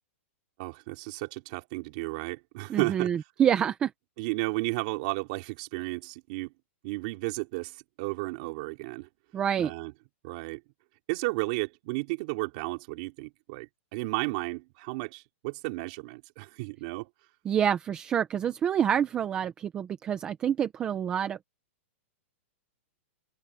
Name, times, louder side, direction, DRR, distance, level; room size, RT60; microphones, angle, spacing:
voice 1, 0.6-3.1 4.2-6.5 6.8-9.1 9.6-9.9 10.2-10.6 11.1-17.1, right 24 dB, 30° right, 4.0 m, -33 dB
voice 2, 2.7-3.9 9.3-9.7 17.4-21.4, right 9 dB, 10° right, 0.8 m, -27 dB
open air
supercardioid pair, 180°, 7 cm